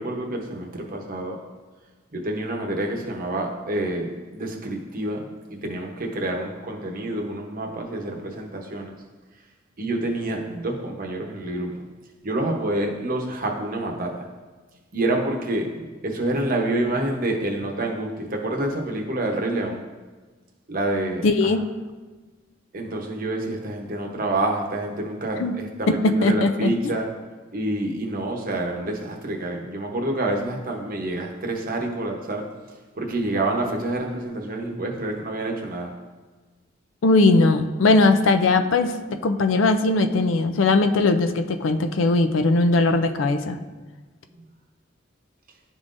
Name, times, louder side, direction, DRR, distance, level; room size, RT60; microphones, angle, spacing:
voice 1, 0.0-1.4 2.1-8.9 9.8-11.7 12.2-14.3 14.9-19.9 20.7-21.5 22.7-27.1 27.5-32.4 32.9-35.9, right 1 dB, 50° right, 1 dB, 0.8 m, -28 dB
voice 2, 21.2-21.6 25.4-25.5 26.0-26.7 37.0-38.9 39.2-43.6, left 3 dB, 90° left, 8 dB, 0.4 m, -19 dB
11.0 x 3.7 x 2.5 m, 1.3 s
head